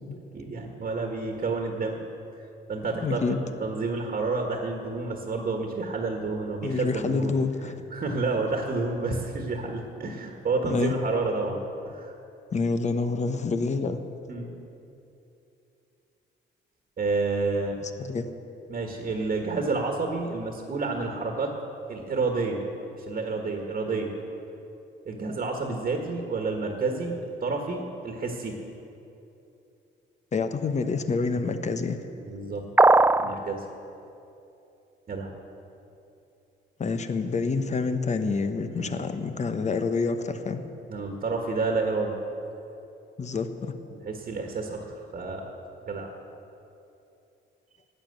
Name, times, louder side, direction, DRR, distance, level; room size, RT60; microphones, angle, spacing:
voice 1, 0.3-2.0 2.7-7.3 7.9-11.6 11.8-12.1 14.3-14.5 17.0-17.8 18.7-21.5 21.9-22.6 22.9-24.1 25.0-27.2 27.4-28.6 32.1-32.6 33.2-33.6 35.1-35.3 38.8-39.0 40.9-42.2 43.9-45.5 45.8-46.1, right 3 dB, 45° right, 2 dB, 1.5 m, -29 dB
voice 2, 3.0-3.4 6.6-7.8 10.7-11.0 12.5-14.0 17.8-18.2 30.3-32.0 36.8-40.6 43.2-43.8, left 4 dB, 35° left, 9 dB, 0.9 m, -27 dB
sound 1, 32.8-33.4, right 3 dB, 10° right, 0.3 m, -17 dB
11.0 x 9.0 x 7.9 m, 2.8 s
cardioid pair, 90°, 20 cm